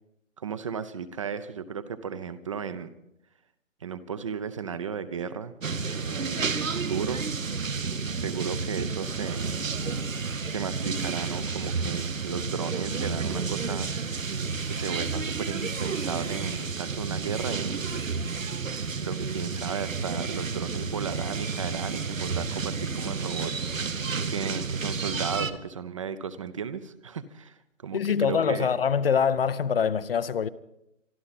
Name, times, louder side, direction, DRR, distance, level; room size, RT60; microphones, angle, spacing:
voice 1, 0.4-2.9 3.8-5.5 5.9-6.5 6.9-7.3 8.1-9.6 10.4-17.8 18.4-28.8, right 6 dB, 25° right, 0.6 m, -35 dB
sound 1, 5.6-25.5, right 4 dB, 85° right, 1.2 m, -31 dB
voice 2, 27.9-30.5, left 7 dB, 50° left, 0.7 m, -24 dB
25.0 x 12.5 x 4.1 m
figure-of-eight pair, 140°, 39 cm